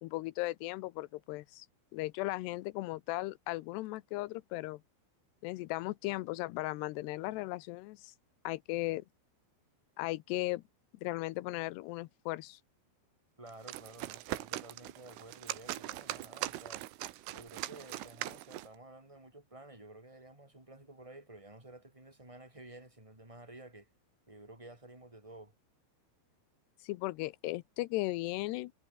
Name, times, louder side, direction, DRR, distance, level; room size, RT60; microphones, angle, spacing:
voice 1, 0.0-1.7 1.9-4.8 5.4-8.1 8.4-9.0 10.0-10.6 11.0-12.6 26.8-28.7, left 19 dB, 80° left, 2.5 m, -37 dB
voice 2, 13.4-16.9 17.3-23.9 24.3-25.5, right 2 dB, 5° right, 5.1 m, -52 dB
sound 1, 13.5-18.8, right 16 dB, 85° right, 3.8 m, -41 dB
omnidirectional pair, 5.6 m